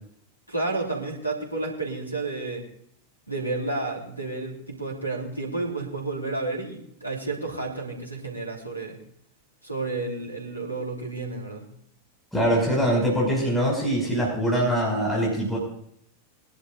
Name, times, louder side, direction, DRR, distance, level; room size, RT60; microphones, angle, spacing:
voice 1, 0.5-2.7 3.3-9.0 9.6-11.7, right 3 dB, 90° left, 0 dB, 3.7 m, -31 dB
voice 2, 12.3-15.6, equal, ahead, -5 dB, 6.0 m, -23 dB
23.0 x 11.5 x 2.6 m, 0.67 s
figure-of-eight pair, 90°, 0 cm